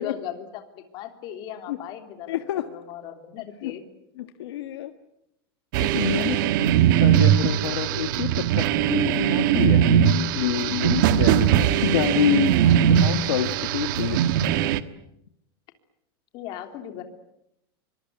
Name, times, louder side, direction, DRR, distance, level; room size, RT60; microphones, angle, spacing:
voice 1, 0.0-3.8 16.3-17.0, left 10 dB, 35° left, 6 dB, 3.2 m, -38 dB
voice 2, 2.3-2.6 3.6-3.7 4.2-4.9 5.8-6.7 7.0-14.4, left 12 dB, 90° left, 7 dB, 1.7 m, -27 dB
sound 1, 5.7-14.8, right 10 dB, 55° right, 1.3 m, -20 dB
25.0 x 23.0 x 9.4 m, 0.81 s
supercardioid pair, 170°, 13 cm